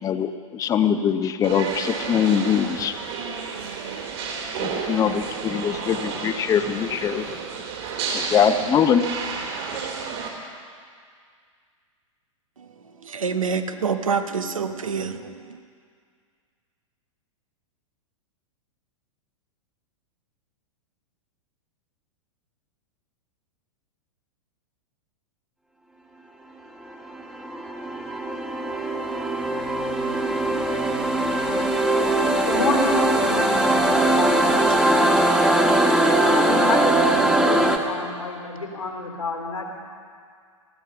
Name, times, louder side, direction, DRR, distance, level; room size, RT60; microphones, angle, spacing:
voice 1, 0.0-3.0 4.6-7.4 8.1-9.1, left 8 dB, 20° left, 9 dB, 0.7 m, -22 dB
sound 1, 1.4-10.3, right 5 dB, 55° right, 3.3 m, -31 dB
voice 2, 13.0-15.6 33.9-34.1 34.5-35.1, right 5 dB, 80° right, 8 dB, 1.1 m, -28 dB
sound 2, 27.1-37.8, right 1 dB, 5° right, 1.3 m, -21 dB
voice 3, 32.2-34.5 36.2-39.7, left 3 dB, 85° left, 1 dB, 3.3 m, -29 dB
19.0 x 13.5 x 5.7 m, 2.1 s
figure-of-eight pair, 100°, 17 cm